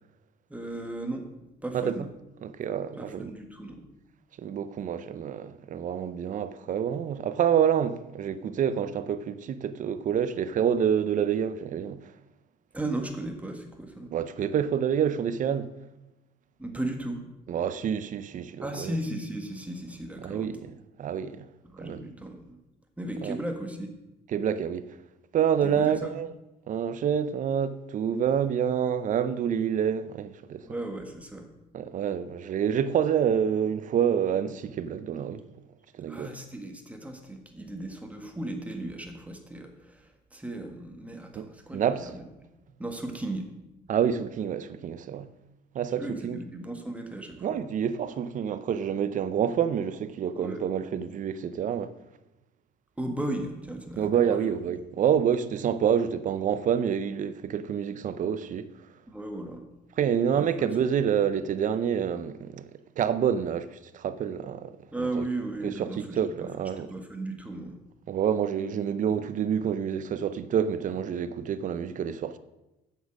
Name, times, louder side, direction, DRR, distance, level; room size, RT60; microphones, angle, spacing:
voice 1, 0.5-1.3 1.6-2.1 3.0-3.8 12.7-14.1 16.6-17.2 18.6-20.5 21.6-22.6 23.0-23.9 25.6-26.0 30.6-31.5 36.1-42.2 42.8-43.5 46.0-47.6 50.3-50.6 53.0-54.5 59.1-59.6 60.3-60.7 64.9-66.5 66.8-67.8, right 1 dB, 10° right, 1.6 m, -36 dB
voice 2, 2.4-3.3 4.4-12.0 14.1-15.7 17.5-19.0 20.2-20.7 21.0-21.4 21.8-22.0 23.2-23.4 24.3-24.9 25.3-26.3 26.7-30.7 31.7-35.4 36.0-36.3 41.3-41.4 41.7-42.1 43.9-45.3 45.7-46.4 47.4-51.9 54.0-58.7 60.0-62.7 63.0-64.8 65.2-65.3 66.0-66.9 68.1-72.4, right 8 dB, 50° right, 0.7 m, -27 dB
7.9 x 7.3 x 6.3 m
cardioid pair, 110°, 17 cm